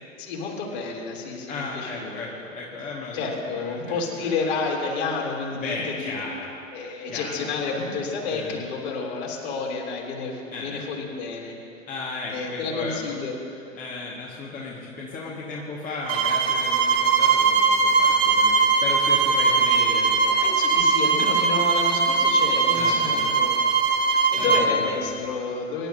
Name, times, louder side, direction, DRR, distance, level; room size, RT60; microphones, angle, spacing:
voice 1, 0.2-2.2 3.1-6.2 6.7-11.5 12.3-13.4 20.4-23.6 23.9-25.9, left 4 dB, 50° left, -2 dB, 3.2 m, -30 dB
voice 2, 1.5-3.3 3.6-4.3 5.5-6.5 7.1-7.4 8.3-8.6 10.5-10.8 11.9-13.2 13.7-20.4 22.7-23.3 24.3-25.1, left 3 dB, 20° left, -4 dB, 1.7 m, -35 dB
sound 1, 16.1-24.7, right 5 dB, 45° right, 1.5 m, -20 dB
24.5 x 11.5 x 2.7 m, 2.7 s
figure-of-eight pair, 105°, 39 cm